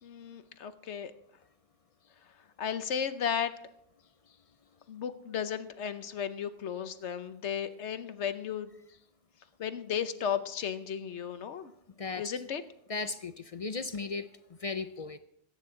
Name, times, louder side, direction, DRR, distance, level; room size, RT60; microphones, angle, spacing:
voice 1, 0.0-1.1 2.6-3.5 4.9-8.7 9.6-11.7 12.2-12.6, left 8 dB, 80° left, 11 dB, 1.1 m, -34 dB
voice 2, 12.0-12.3 12.9-14.3 14.6-15.2, left 4 dB, 45° left, 11 dB, 0.5 m, -36 dB
22.0 x 9.2 x 3.8 m, 0.75 s
omnidirectional pair, 1.2 m